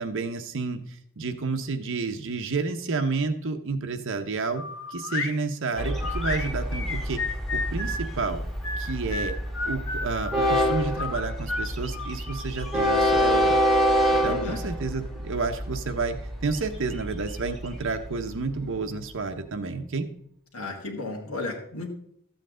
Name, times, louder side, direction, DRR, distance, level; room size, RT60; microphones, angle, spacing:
voice 1, 0.0-4.6 4.9-7.2 7.5-8.4 8.8-9.3 9.6-13.6 14.2-20.1, right 4 dB, 60° right, 6 dB, 0.8 m, -30 dB
sound 1, 4.5-5.4 6.0-8.1 8.6-10.5 11.0-12.8, left 3 dB, 60° left, 1.4 m, -32 dB
Train, 5.8-18.8, equal, ahead, 1.1 m, -27 dB
voice 2, 14.1-14.6 20.5-21.9, left 3 dB, 80° left, 0 dB, 1.6 m, -34 dB
13.0 x 7.8 x 3.7 m, 0.70 s
head